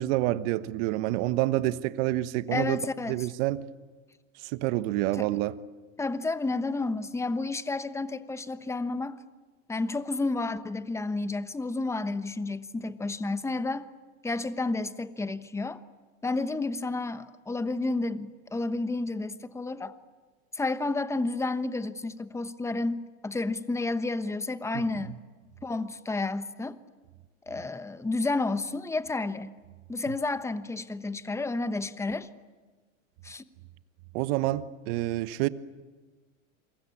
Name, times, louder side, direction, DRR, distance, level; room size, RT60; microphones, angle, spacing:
voice 1, 0.0-2.8 3.1-3.7 4.4-5.6 24.7-25.2 34.1-35.5, right 16 dB, 55° right, 1.3 m, -28 dB
voice 2, 2.5-3.3 5.2-5.3 6.0-9.2 9.7-13.9 14.2-15.8 16.2-19.9 20.5-25.2 25.6-26.8 27.5-29.5 29.9-32.3 33.2-33.4, left 3 dB, 5° left, 1.1 m, -31 dB
28.0 x 23.5 x 8.6 m
hypercardioid pair, 115°, 40 cm